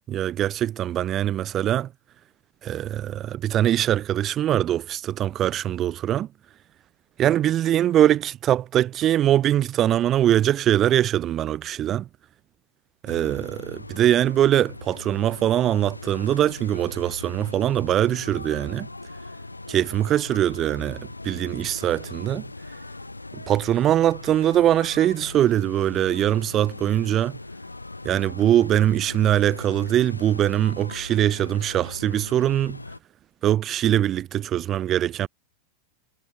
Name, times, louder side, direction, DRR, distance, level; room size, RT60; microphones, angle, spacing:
voice 1, 0.1-1.9 2.6-6.3 7.2-12.1 13.0-18.9 19.7-22.5 23.5-27.4 28.0-32.8 33.4-35.3, right 11 dB, 30° right, 2.2 m, -22 dB
sound 1, 13.1-33.0, left 2 dB, 85° left, 4.4 m, -40 dB
figure-of-eight pair, 90°, 0 cm